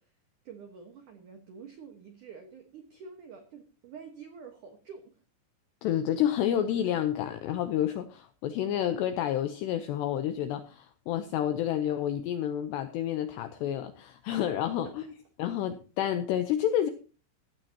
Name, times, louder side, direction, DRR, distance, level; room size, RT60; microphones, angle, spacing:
voice 1, 0.4-5.1 14.6-14.9, right 6 dB, 80° right, 5 dB, 1.8 m, -48 dB
voice 2, 5.8-15.1 15.4-16.9, left 10 dB, 90° left, 9 dB, 2.4 m, -29 dB
15.5 x 14.5 x 2.9 m, 0.36 s
omnidirectional pair, 5.9 m